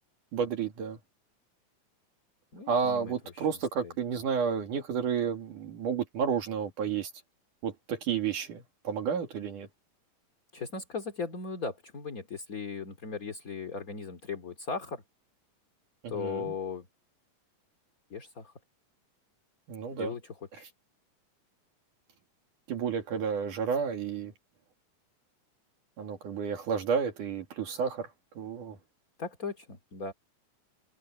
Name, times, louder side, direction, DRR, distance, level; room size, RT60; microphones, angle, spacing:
voice 1, 0.3-1.0 2.7-7.1 7.6-9.7 16.0-16.5 19.7-20.1 20.6-20.7 22.7-24.3 26.0-28.8, right 6 dB, 70° right, 3.9 m, -31 dB
voice 2, 2.5-3.5 3.8-3.9 10.5-15.0 16.1-16.9 18.1-18.5 20.0-20.7 29.2-30.1, left 5 dB, 30° left, 2.4 m, -38 dB
open air
omnidirectional pair, 3.8 m